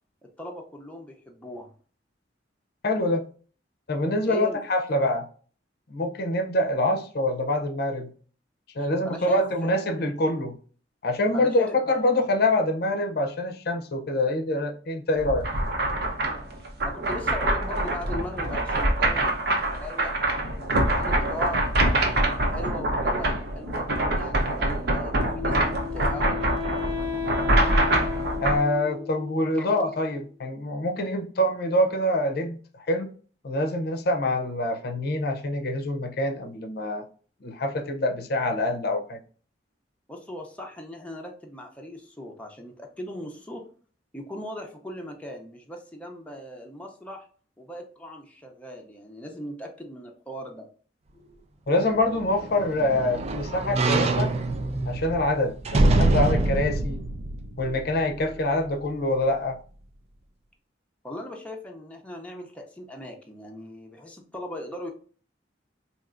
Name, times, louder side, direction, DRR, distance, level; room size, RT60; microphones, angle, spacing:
voice 1, 0.2-1.7 4.2-4.6 8.8-9.7 11.3-11.8 16.8-22.1 22.5-26.5 29.6-29.7 40.1-43.7 44.1-47.3 47.6-50.7 61.0-64.9, left 1 dB, 5° left, 0.6 m, -39 dB
voice 2, 2.8-3.2 3.9-5.3 5.9-8.1 8.8-10.6 11.0-15.5 28.4-33.1 33.4-37.0 37.4-39.2 51.7-54.3 54.9-57.0 57.6-59.6, left 1 dB, 60° left, 0.6 m, -25 dB
sound 1, 15.2-28.6, right 1 dB, 60° right, 0.8 m, -25 dB
Wind instrument woodwind instrument, 25.1-30.2, left 7 dB, 80° right, 1.3 m, -34 dB
sound 2, 52.0-58.4 58.8-58.9, right 2 dB, 35° right, 0.4 m, -25 dB
4.3 x 2.8 x 2.5 m
head